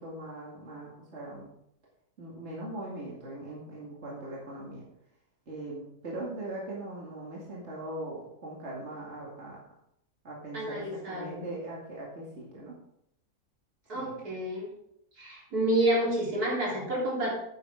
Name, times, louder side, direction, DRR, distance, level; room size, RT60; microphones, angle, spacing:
voice 1, 0.0-1.5 2.2-4.8 5.5-9.6 10.2-12.8 13.9-14.2, right 1 dB, 45° right, -5 dB, 2.5 m, -40 dB
voice 2, 10.5-11.5 13.9-14.7 15.2-17.4, right 1 dB, 70° right, -5 dB, 4.2 m, -29 dB
10.0 x 9.2 x 3.7 m, 0.77 s
omnidirectional pair, 1.6 m